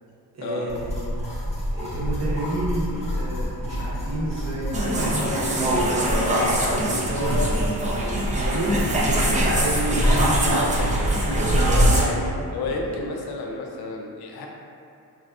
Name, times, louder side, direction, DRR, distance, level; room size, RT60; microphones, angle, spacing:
voice 1, 0.3-1.0 1.7-6.2 6.6-7.5 7.8-10.0 10.4-10.9 11.8-13.0, right 1 dB, 45° right, -5 dB, 0.7 m, -31 dB
sound 1, 0.7-12.1, equal, 15° left, 0.6 m, -26 dB
sound 2, 4.7-12.1, right 1 dB, 20° right, 0.3 m, -24 dB
voice 2, 11.6-11.9 12.5-14.5, left 3 dB, 70° left, 0 dB, 0.5 m, -31 dB
3.4 x 2.2 x 2.4 m, 2.6 s
cardioid pair, 105°, 40 cm